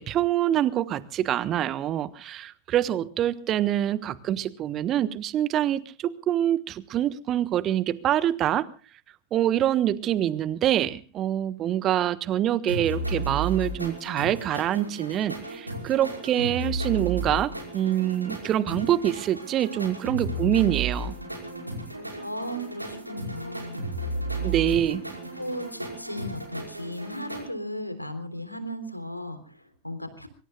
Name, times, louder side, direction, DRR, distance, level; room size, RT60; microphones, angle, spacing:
voice 1, 0.0-8.7 9.3-21.1 24.4-25.0, right 11 dB, 30° right, 16 dB, 1.2 m, -25 dB
sound 1, 12.7-27.4, right 2 dB, 85° right, 5.4 m, -34 dB
voice 2, 22.1-23.8 24.4-25.0 25.4-30.3, equal, 90° left, 11 dB, 3.6 m, -36 dB
25.0 x 24.5 x 2.4 m, 0.38 s
figure-of-eight pair, 90°, 0 cm